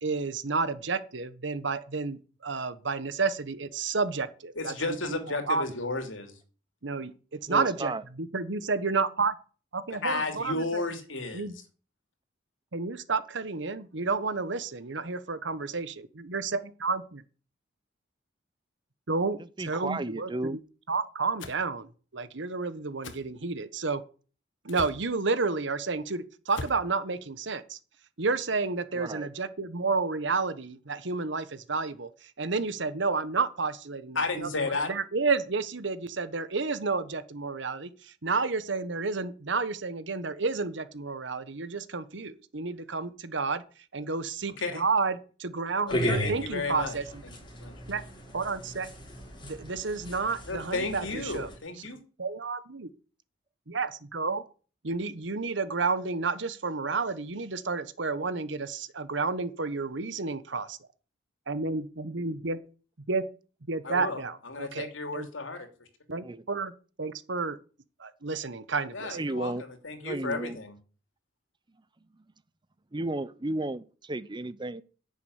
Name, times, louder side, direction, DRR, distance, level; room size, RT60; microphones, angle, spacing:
voice 1, 0.0-4.7 5.0-5.2 5.5-5.6 6.8-9.3 9.7-10.8 11.3-11.5 12.7-17.2 19.1-20.6 20.9-24.0 24.6-27.8 28.2-34.5 34.9-43.6 43.9-47.2 47.9-48.0 48.3-48.9 49.4-51.5 52.2-52.9 53.7-54.4 54.8-60.8 61.5-62.6 63.1-63.2 63.7-65.3 66.1-66.7 67.0-67.6 68.0-69.2, right 4 dB, 65° right, 1.2 m, -31 dB
voice 2, 4.6-6.3 9.9-11.5 34.1-34.9 44.6-44.8 45.9-46.9 47.2-47.3 47.6-47.7 50.5-52.0 63.8-65.7 68.9-70.8, left 3 dB, 90° left, 2.9 m, -33 dB
voice 3, 7.5-8.0 19.6-20.6 29.0-29.3 66.2-66.4 69.1-69.6 70.0-70.6 72.9-74.8, right 2 dB, 25° right, 0.7 m, -33 dB
sound 1, 21.4-21.6 23.0-23.2 24.7-25.0 26.5-26.8, left 3 dB, 70° left, 1.7 m, -40 dB
sound 2, 45.9-51.6, equal, 25° left, 5.5 m, -36 dB
10.5 x 7.0 x 9.5 m
head